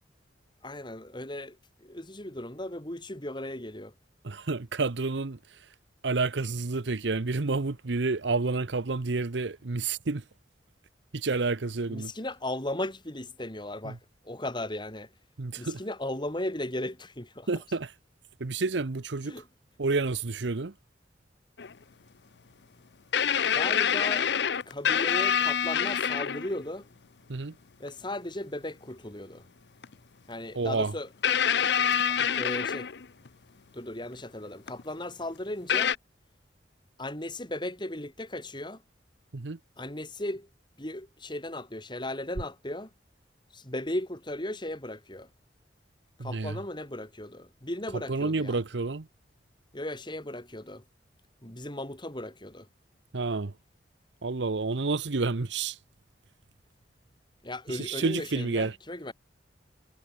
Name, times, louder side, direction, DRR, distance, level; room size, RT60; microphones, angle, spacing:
voice 1, 0.6-3.9 11.9-14.0 14.2-15.1 15.6-17.5 19.3-19.5 23.5-24.3 24.7-26.9 27.8-29.4 30.3-31.1 32.1-32.9 33.7-36.0 37.0-38.8 39.8-40.5 40.8-42.9 43.5-45.3 46.2-48.6 49.7-50.8 51.4-52.7 57.4-59.1, left 1 dB, 25° left, 3.9 m, -36 dB
voice 2, 4.2-5.4 6.0-10.2 11.1-12.1 13.8-14.0 15.4-15.8 17.5-17.9 18.4-19.4 19.8-20.7 27.3-27.5 30.5-30.9 39.3-39.6 46.2-46.6 48.1-49.1 53.1-53.5 54.2-55.8 57.7-58.8, right 3 dB, 80° right, 0.9 m, -29 dB
sound 1, 21.6-21.7 23.1-26.6 27.9-28.0 29.8-29.9 31.2-33.3 34.7-34.8 35.7-36.0, left 8 dB, 70° left, 0.7 m, -26 dB
head